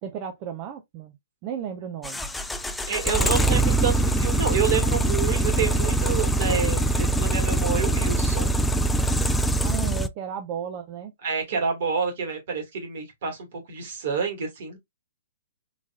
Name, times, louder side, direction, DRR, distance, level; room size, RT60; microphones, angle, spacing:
voice 1, 0.0-1.1 1.4-2.2 9.6-11.1, right 8 dB, 35° right, 0.7 m, -34 dB
sound 1, 2.0-10.1, right 1 dB, 5° left, 0.3 m, -23 dB
voice 2, 2.9-8.5 11.2-14.8, right 6 dB, 55° right, 2.0 m, -28 dB
3.9 x 3.1 x 2.4 m
figure-of-eight pair, 125°, 0 cm